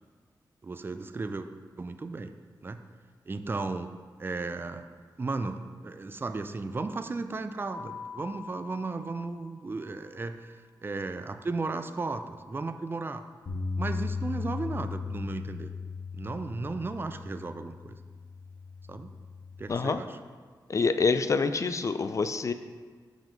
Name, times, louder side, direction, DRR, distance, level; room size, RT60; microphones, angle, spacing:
voice 1, 0.6-1.5 1.8-2.3 2.6-2.8 3.3-3.9 4.2-4.9 5.2-10.6 10.8-13.2 13.8-15.7 16.1-18.0 18.9-19.1 19.6-20.2, right 3 dB, 30° right, 9 dB, 0.4 m, -35 dB
Keyboard (musical), 7.6-10.2, left 5 dB, 5° right, 1.2 m, -45 dB
Bass guitar, 13.5-19.7, left 4 dB, 80° left, 1.4 m, -37 dB
voice 2, 19.7-20.0 20.7-22.5, left 4 dB, 45° left, 10 dB, 0.4 m, -26 dB
5.8 x 5.2 x 5.1 m, 1.5 s
cardioid pair, 75°, 8 cm